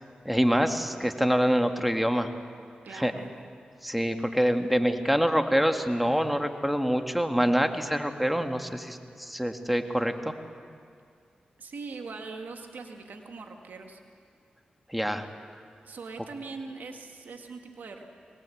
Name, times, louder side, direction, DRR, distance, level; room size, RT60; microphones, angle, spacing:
voice 1, 0.3-2.3 2.9-3.1 3.8-10.3 14.9-15.3, equal, ahead, 6 dB, 1.9 m, -25 dB
voice 2, 2.8-3.3 11.6-14.0 15.8-18.0, right 4 dB, 75° right, 4 dB, 1.9 m, -41 dB
22.5 x 19.5 x 8.5 m, 2.3 s
cardioid pair, 40°, 3 cm